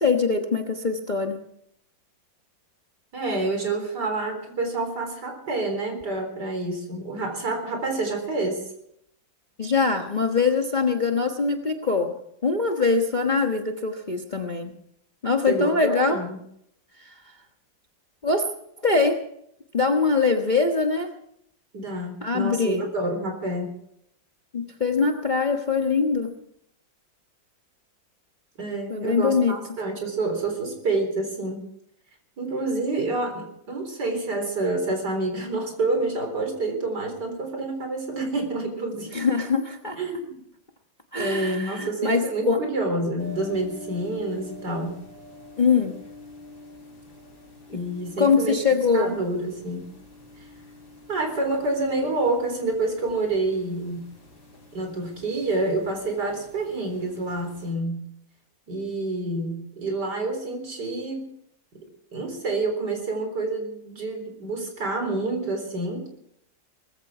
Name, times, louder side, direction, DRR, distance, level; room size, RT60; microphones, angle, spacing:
voice 1, 0.0-1.4 9.6-12.1 12.4-14.7 15.2-16.2 17.0-17.1 18.2-18.4 18.8-19.2 19.7-21.1 22.2-22.8 24.5-26.3 28.9-29.6 39.1-40.0 41.1-42.6 45.6-45.9 48.2-49.1, left 4 dB, 30° left, 3 dB, 1.2 m, -23 dB
voice 2, 3.1-8.6 15.5-16.4 21.7-23.7 28.6-31.6 32.4-39.1 39.9-40.4 41.1-45.0 47.7-48.6 48.9-49.9 50.4-50.5 51.1-54.0 54.7-58.1 58.7-61.3 62.1-66.1, right 2 dB, 60° right, 4 dB, 4.5 m, -28 dB
sound 1, 43.2-57.7, left 1 dB, 60° left, 4.5 m, -47 dB
19.5 x 15.0 x 4.9 m, 0.73 s
omnidirectional pair, 2.0 m